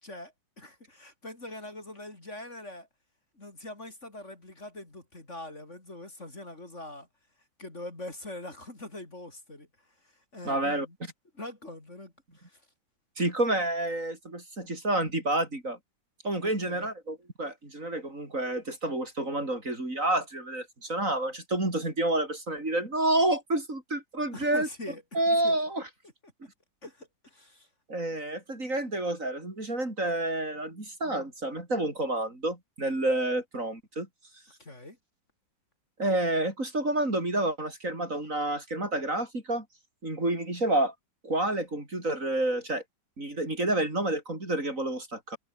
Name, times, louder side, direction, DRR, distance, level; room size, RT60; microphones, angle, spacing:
voice 1, 0.0-2.9 3.4-7.1 7.6-9.7 10.3-11.0 11.3-12.6 14.6-14.7 16.4-16.9 24.3-25.6 26.8-27.7 34.6-35.0, left 1 dB, 35° left, 5.0 m, -43 dB
voice 2, 10.4-10.9 13.2-15.8 16.2-24.7 25.1-25.8 27.9-34.1 36.0-39.6 40.0-40.9 41.2-42.8 43.2-45.4, right 1 dB, 40° right, 6.1 m, -29 dB
omnidirectional pair, 2.1 m